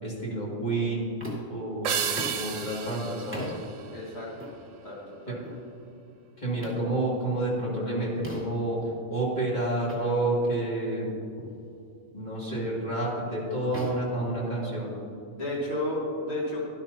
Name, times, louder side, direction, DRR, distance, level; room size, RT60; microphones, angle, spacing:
voice 1, 0.0-1.1 1.5-3.5 5.3-5.4 6.4-11.1 12.1-14.9, right 2 dB, 30° left, -5 dB, 2.7 m, -29 dB
sound 1, 1.2-1.6 2.2-2.5 3.3-3.6 4.4-4.6 5.4-5.6 6.6-6.9 8.2-8.6 9.9-10.0 10.5-10.6 11.4-11.6 12.5-12.8 13.7-15.0, right 1 dB, 10° right, 2.1 m, -40 dB
sound 2, 1.8-4.5, right 7 dB, 75° right, 1.1 m, -33 dB
voice 2, 3.9-4.5 4.8-5.0 5.2-5.4 15.3-16.7, left 1 dB, 50° left, -5 dB, 2.4 m, -32 dB
12.0 x 12.0 x 2.9 m, 2.6 s
omnidirectional pair, 1.4 m